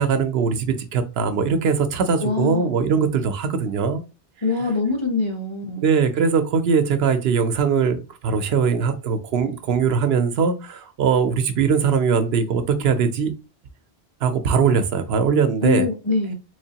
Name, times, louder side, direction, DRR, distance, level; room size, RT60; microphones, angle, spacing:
voice 1, 0.0-4.0 5.8-13.3 14.2-15.9, right 6 dB, 70° right, 0.8 m, -21 dB
voice 2, 2.2-2.7 4.4-5.8 15.6-16.3, left 4 dB, 30° left, 0.6 m, -23 dB
3.6 x 3.2 x 2.7 m
omnidirectional pair, 1.1 m